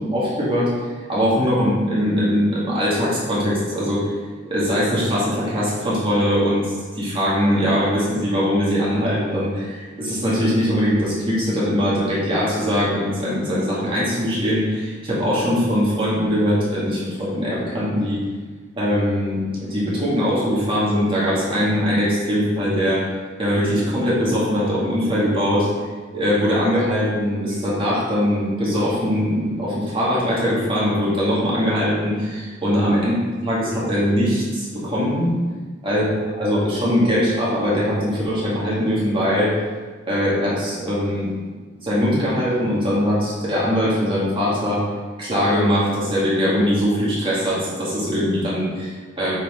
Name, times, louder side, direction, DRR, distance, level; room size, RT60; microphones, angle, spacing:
voice 1, 0.0-4.0 4.4-18.2 18.8-23.0 23.4-25.7 26.1-33.1 33.4-35.4 35.8-39.6 40.1-41.3 41.8-44.8 45.2-49.4, equal, 30° right, -8 dB, 2.1 m, -21 dB
8.8 x 4.4 x 4.4 m, 1.4 s
head